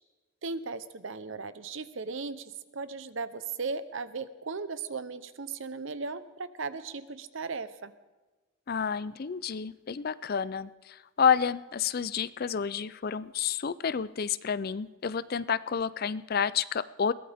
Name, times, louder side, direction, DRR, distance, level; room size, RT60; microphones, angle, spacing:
voice 1, 0.4-7.9, right 4 dB, 60° right, 13 dB, 0.8 m, -37 dB
voice 2, 8.7-10.7 11.2-17.1, left 7 dB, 45° left, 17 dB, 0.4 m, -29 dB
22.0 x 16.5 x 3.5 m, 1.2 s
head